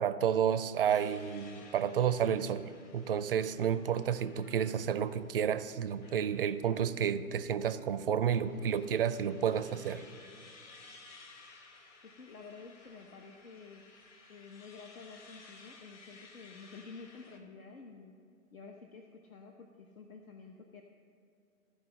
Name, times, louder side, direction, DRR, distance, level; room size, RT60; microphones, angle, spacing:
voice 1, 0.0-10.0, right 8 dB, 45° right, 13 dB, 0.4 m, -31 dB
sound 1, 0.9-17.4, left 3 dB, 25° left, 1.0 m, -57 dB
voice 2, 12.0-13.8 14.3-18.1 18.5-20.8, left 4 dB, 70° left, 3 dB, 1.1 m, -50 dB
14.5 x 5.1 x 6.3 m, 2.5 s
hypercardioid pair, 130°, 43 cm